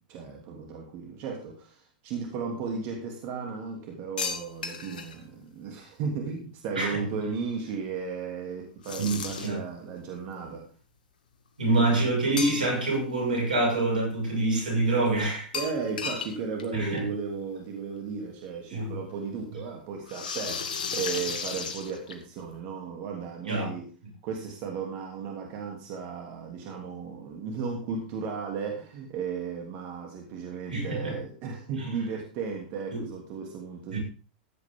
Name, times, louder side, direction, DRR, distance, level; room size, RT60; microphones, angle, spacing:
voice 1, 0.1-10.7 15.5-23.9 24.2-34.0, right 5 dB, 50° right, 3.0 m, -35 dB
sound 1, 4.2-5.2 8.8-9.7 12.4-13.0 13.3-13.4 15.5-16.3 16.6-16.7 17.0-17.1 18.3-18.4 20.1-22.4, left 5 dB, 75° left, 2.0 m, -34 dB
voice 2, 9.0-9.6 11.6-15.5 16.7-17.0 18.7-19.0 23.5-23.8 30.7-31.2 31.8-31.9 32.9-33.0 33.9-34.0, right 2 dB, 85° right, 5.9 m, -26 dB
15.0 x 9.2 x 3.7 m
hypercardioid pair, 100°, 5 cm